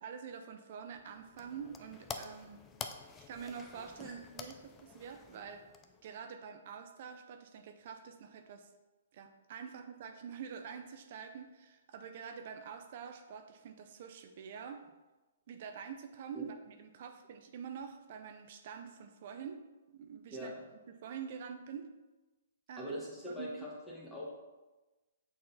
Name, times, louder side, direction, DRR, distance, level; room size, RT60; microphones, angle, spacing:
voice 1, 0.0-2.6 3.2-5.6 6.0-8.7 9.1-14.8 15.5-19.6 19.9-20.5 20.9-21.9 22.7-23.0 23.3-23.7, right 7 dB, 55° right, 6 dB, 0.6 m, -46 dB
sound 1, 0.9-6.3, left 6 dB, 20° left, 0.4 m, -49 dB
voice 2, 22.8-24.3, equal, 5° left, -6 dB, 1.7 m, -42 dB
6.5 x 4.1 x 4.1 m, 1.1 s
hypercardioid pair, 130°, 0 cm